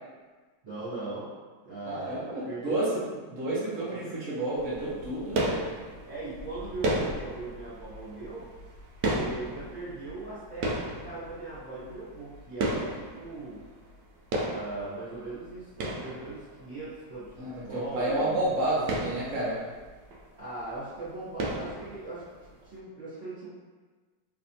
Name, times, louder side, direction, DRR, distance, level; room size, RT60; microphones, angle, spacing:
voice 1, 0.6-1.3 1.6-3.2 3.9-4.1 6.0-8.5 9.1-13.6 14.4-17.3 17.6-18.5 20.3-22.2 22.6-23.5, right 2 dB, 40° right, -14 dB, 1.4 m, -39 dB
voice 2, 1.9-3.0 3.3-5.6 17.3-19.6, right 1 dB, 55° right, -8 dB, 1.1 m, -30 dB
sound 1, 4.5-14.0 14.3-16.8 17.3-17.4 17.7-17.8 18.0-18.2 18.6-20.4 20.7-21.0 21.4-22.4, right 1 dB, 80° right, 1.2 m, -34 dB
3.3 x 3.3 x 2.7 m, 1.4 s
omnidirectional pair, 1.9 m